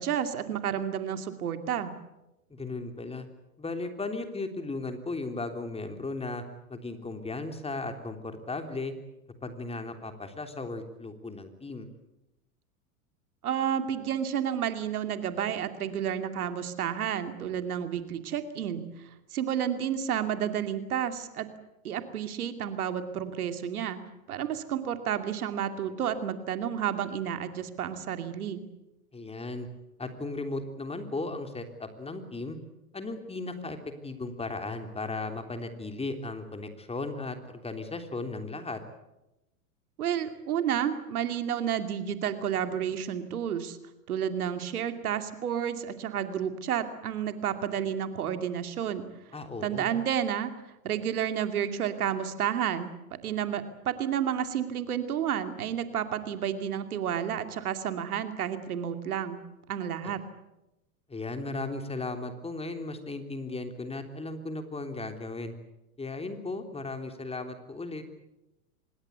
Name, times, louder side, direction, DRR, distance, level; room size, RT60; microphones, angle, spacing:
voice 1, 0.0-1.9 13.4-18.9 19.3-21.5 21.8-24.0 24.3-28.6 40.0-43.8 44.1-49.1 49.6-50.5 50.8-52.9 53.2-59.4 59.7-60.2, right 9 dB, 80° right, 8 dB, 2.6 m, -31 dB
voice 2, 2.5-3.3 3.6-6.4 6.7-8.9 9.4-11.9 29.1-29.7 30.0-32.6 32.9-33.8 34.0-38.8 49.3-49.9 60.0-60.1 61.1-65.5 66.0-68.0, left 3 dB, 15° left, 6 dB, 3.4 m, -36 dB
25.0 x 21.5 x 8.2 m, 0.95 s
hypercardioid pair, 95°, 44 cm